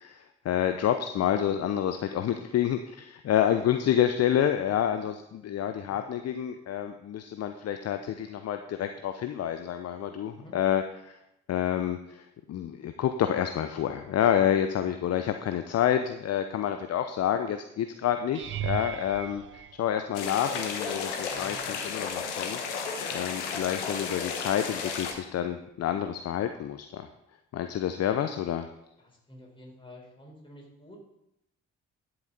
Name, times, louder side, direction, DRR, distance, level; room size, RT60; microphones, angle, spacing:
voice 1, 0.0-11.2 11.5-12.2 12.5-22.6 23.1-27.1 27.5-28.7, left 10 dB, 45° left, 8 dB, 0.7 m, -28 dB
sound 1, 18.3-20.6 21.3-21.8 22.1-22.3 26.6-26.7, right 10 dB, 35° right, 0.4 m, -37 dB
sound 2, 20.1-25.1, left 5 dB, 80° left, 1.1 m, -33 dB
voice 2, 21.3-21.8 29.0-31.0, left 1 dB, 15° left, -2 dB, 4.5 m, -50 dB
11.0 x 7.8 x 4.1 m, 0.83 s
figure-of-eight pair, 40°, 35 cm